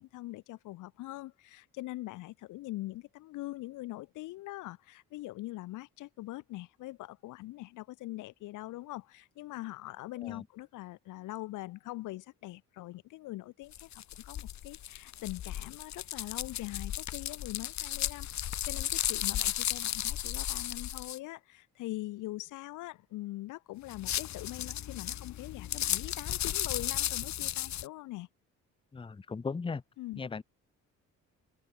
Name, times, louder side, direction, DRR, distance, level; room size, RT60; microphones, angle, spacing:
voice 1, 0.0-28.3 30.0-30.2, left 18 dB, 85° left, 0.8 m, -42 dB
sound 1, 13.7-21.2 23.9-27.9, left 12 dB, 65° left, 1.7 m, -35 dB
voice 2, 28.9-29.8 30.2-30.4, left 4 dB, 15° left, 0.6 m, -37 dB
cardioid pair, 90°, 30 cm